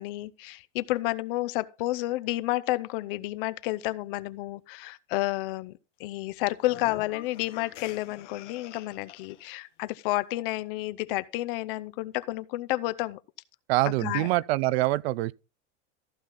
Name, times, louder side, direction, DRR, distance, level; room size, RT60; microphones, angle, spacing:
voice 1, 0.0-13.2 14.0-14.3, left 18 dB, 50° left, 0.6 m, -31 dB
mocking demon laugh growl, 6.6-9.5, left 13 dB, 85° left, 1.5 m, -46 dB
voice 2, 13.7-15.3, right 18 dB, 60° right, 0.5 m, -25 dB
14.5 x 5.8 x 3.8 m
supercardioid pair, 160°, 35 cm